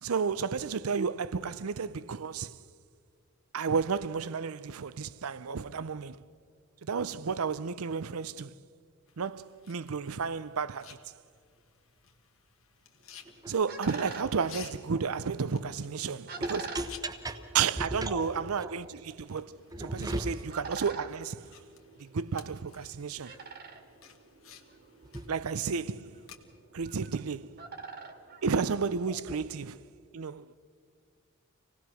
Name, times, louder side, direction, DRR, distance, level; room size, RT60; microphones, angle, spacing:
voice 1, 0.0-2.5 3.5-6.2 6.8-8.5 9.2-11.0 13.5-16.6 17.5-21.5 22.0-23.3 25.3-26.2 26.7-27.6 28.4-29.8 30.1-30.6, right 5 dB, 85° right, 0.6 m, -32 dB
sound 1, 9.1-26.4, left 8 dB, 70° left, 1.6 m, -55 dB
sound 2, 13.0-29.3, right 5 dB, 50° right, 1.9 m, -47 dB
voice 2, 16.3-17.4 17.8-18.8 19.7-20.3 25.1-25.3 29.1-29.4, right 1 dB, 15° right, 1.1 m, -37 dB
26.0 x 18.5 x 6.3 m
head